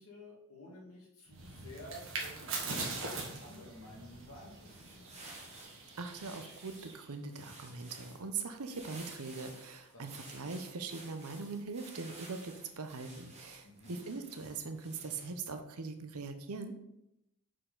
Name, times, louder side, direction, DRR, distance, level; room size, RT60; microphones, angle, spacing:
voice 1, 0.0-5.3 9.9-10.4 13.6-14.0, left 1 dB, 70° left, -3 dB, 2.2 m, -52 dB
sound 1, 1.3-7.0, right 3 dB, 60° right, 1.4 m, -42 dB
sound 2, 4.5-15.5, right 2 dB, 30° right, 1.5 m, -54 dB
voice 2, 6.0-16.7, right 4 dB, 75° right, 7 dB, 0.8 m, -41 dB
6.5 x 4.5 x 3.9 m, 0.85 s
head